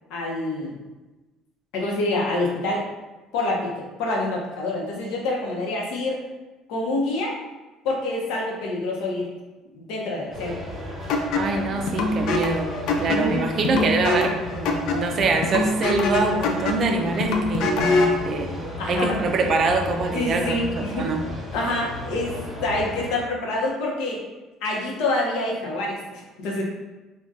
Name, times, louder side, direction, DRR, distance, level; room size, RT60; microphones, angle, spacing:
voice 1, 0.1-0.8 1.7-2.9 3.3-6.2 6.7-7.3 7.8-9.3 9.7-10.6 13.1-13.4 18.8-19.2 20.1-21.1 21.5-22.4 22.6-24.2 24.6-26.6, left 2 dB, 75° left, -2 dB, 0.7 m, -26 dB
sound 1, 10.3-23.1, left 1 dB, ahead, 0.7 m, -34 dB
sound 2, 11.1-18.2, left 2 dB, 55° left, 0.4 m, -25 dB
voice 2, 11.3-12.7 13.0-18.5 18.9-21.2, right 3 dB, 35° right, 3 dB, 0.3 m, -24 dB
2.6 x 2.2 x 3.5 m, 1.1 s
cardioid pair, 170°, 0 cm